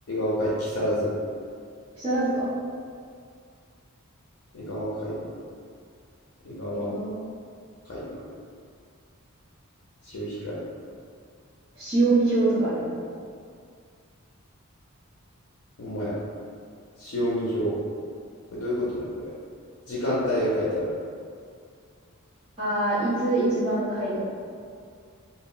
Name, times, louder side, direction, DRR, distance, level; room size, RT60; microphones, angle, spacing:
voice 1, 0.1-1.1 4.5-5.2 6.4-6.9 7.9-8.2 10.1-10.6 15.8-16.1 17.0-17.8 18.5-19.3 19.9-20.9, equal, 60° left, -6 dB, 0.5 m, -28 dB
voice 2, 1.9-2.4 6.7-7.1 11.8-12.9 22.6-24.2, right 2 dB, 25° right, -17 dB, 0.8 m, -24 dB
2.1 x 2.0 x 3.7 m, 2.2 s
head